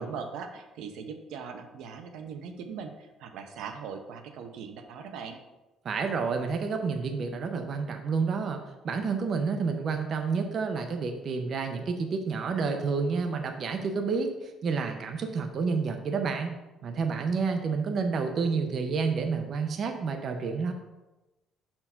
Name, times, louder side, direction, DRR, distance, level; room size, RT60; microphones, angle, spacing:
voice 1, 0.0-5.4, right 6 dB, 80° right, 6 dB, 0.7 m, -40 dB
voice 2, 5.8-16.5 16.8-20.7, right 5 dB, 40° right, 5 dB, 0.6 m, -29 dB
5.8 x 4.4 x 5.5 m, 1.1 s
cardioid pair, 165°, 0 cm